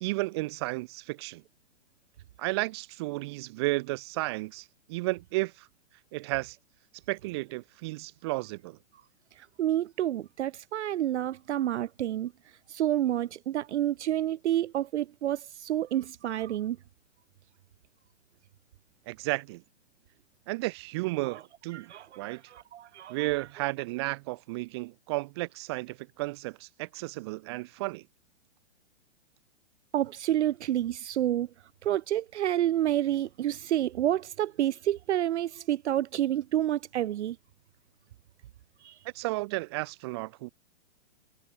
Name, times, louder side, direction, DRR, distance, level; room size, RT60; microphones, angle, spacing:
voice 1, 0.0-1.4 2.4-5.7 6.1-6.6 7.1-8.8 19.1-19.6 20.5-22.4 23.1-28.0 39.1-40.5, right 22 dB, 20° right, 1.2 m, -33 dB
voice 2, 9.6-12.3 12.7-16.8 21.3-21.4 21.7-23.2 29.9-31.5 31.8-37.4 38.8-39.0, right 12 dB, 70° right, 0.6 m, -29 dB
hypercardioid pair, 175°, 36 cm